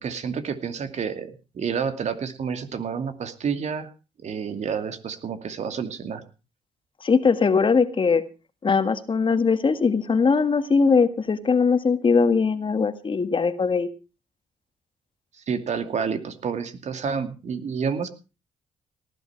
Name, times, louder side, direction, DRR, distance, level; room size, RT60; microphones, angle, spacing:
voice 1, 0.0-3.9 4.2-6.2 15.5-18.1, right 6 dB, 60° right, 8 dB, 2.4 m, -29 dB
voice 2, 7.0-8.2 8.6-13.9, left 5 dB, 40° left, 10 dB, 1.7 m, -20 dB
18.5 x 11.0 x 4.5 m, 0.32 s
cardioid pair, 70°, 13 cm